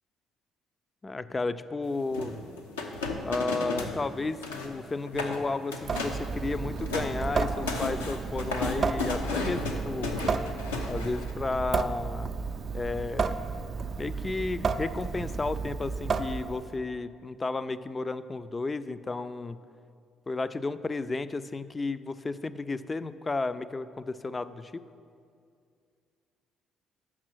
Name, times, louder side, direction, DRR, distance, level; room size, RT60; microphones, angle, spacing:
voice 1, 1.0-2.3 3.3-10.1 10.9-12.4 12.7-13.4 14.0-19.6 20.3-24.8, left 3 dB, 30° left, 13 dB, 0.4 m, -33 dB
sound 1, 2.1-4.0 4.2-4.7 5.1-5.4 5.7-6.2 6.6-11.3, left 3 dB, 90° left, 0.6 m, -33 dB
Water tap faucet / Sink (filling or washing) / Drip, 5.8-16.7, right 5 dB, 45° right, 0.4 m, -32 dB
7.4 x 6.0 x 6.1 m, 2.3 s
hypercardioid pair, 50°, 0 cm